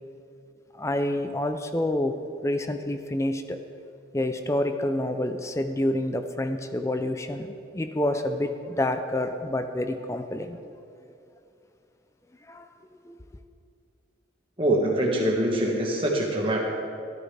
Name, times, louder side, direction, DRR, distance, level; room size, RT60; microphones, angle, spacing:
voice 1, 0.7-3.6 4.1-10.6 12.5-12.7 13.0-13.2, left 1 dB, 15° left, 0.4 m, -28 dB
voice 2, 14.6-16.6, right 1 dB, 30° right, 1.6 m, -24 dB
13.0 x 12.0 x 3.4 m
head